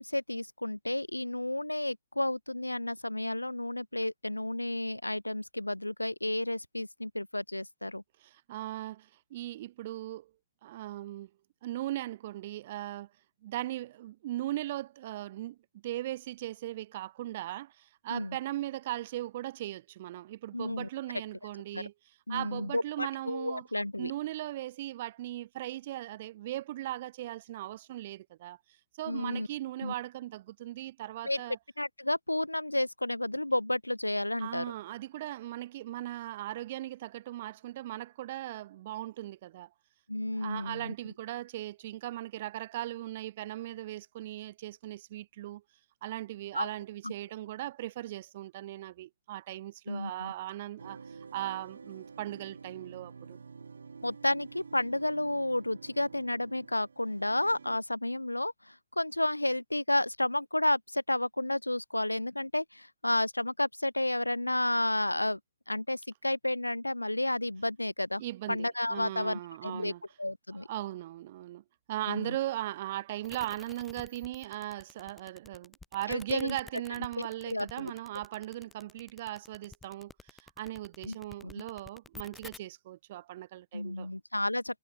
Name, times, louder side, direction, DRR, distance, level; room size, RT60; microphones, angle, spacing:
voice 1, 0.0-8.0 18.1-18.4 20.5-20.9 21.7-21.8 22.3-24.1 29.1-29.5 29.8-29.9 31.2-31.4 31.8-34.6 40.1-40.9 46.5-46.7 47.0-47.1 49.9-50.3 54.0-65.4 65.7-68.2 68.5-69.9 70.2-70.7 72.1-72.4 76.1-76.6 77.2-77.9 81.1-81.2 81.5-81.6 83.7-84.8, left 1 dB, 85° left, 0.6 m, -31 dB
voice 2, 8.2-10.3 10.6-11.3 11.6-13.1 13.4-21.9 22.3-23.7 24.0-28.6 29.0-31.6 34.4-39.7 40.4-45.6 46.0-53.4 68.2-70.0 70.7-84.1, right 14 dB, 40° right, 0.8 m, -38 dB
sound 1, 50.8-57.8, right 5 dB, 65° right, 4.2 m, -49 dB
sound 2, 73.2-82.6, left 3 dB, 5° left, 1.2 m, -50 dB
figure-of-eight pair, 120°, 0 cm